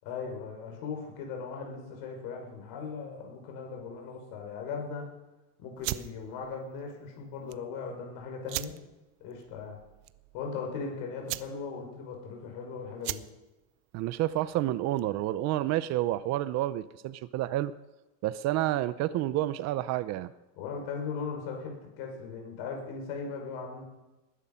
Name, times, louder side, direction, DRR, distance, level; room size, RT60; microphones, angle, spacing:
voice 1, 0.0-5.1 5.6-8.7 9.2-9.8 10.3-13.2 20.6-23.9, left 5 dB, 65° left, 2 dB, 6.0 m, -38 dB
sound 1, 5.8-15.3, right 19 dB, 85° right, 0.8 m, -41 dB
voice 2, 13.9-17.7 18.2-20.3, right 14 dB, 45° right, 16 dB, 0.6 m, -29 dB
20.0 x 11.5 x 5.6 m, 1.0 s
cardioid pair, 170°, 39 cm